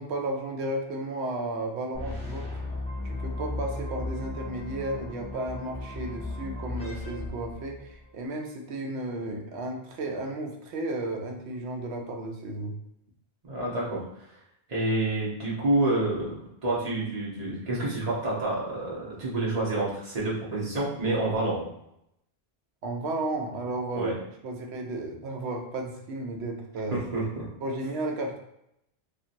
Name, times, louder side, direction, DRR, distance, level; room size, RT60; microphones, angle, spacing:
voice 1, 0.0-2.5 3.0-12.7 22.8-24.2 24.4-27.0 27.6-28.4, right 2 dB, 85° right, 2 dB, 0.8 m, -33 dB
sound 1, 1.9-8.1, left 2 dB, 10° left, 0.4 m, -36 dB
voice 2, 13.4-14.0 14.7-16.3 16.6-21.6 23.9-24.1 26.9-27.4, right 2 dB, 40° right, -6 dB, 1.0 m, -28 dB
2.7 x 2.5 x 2.5 m, 0.77 s
omnidirectional pair, 1.1 m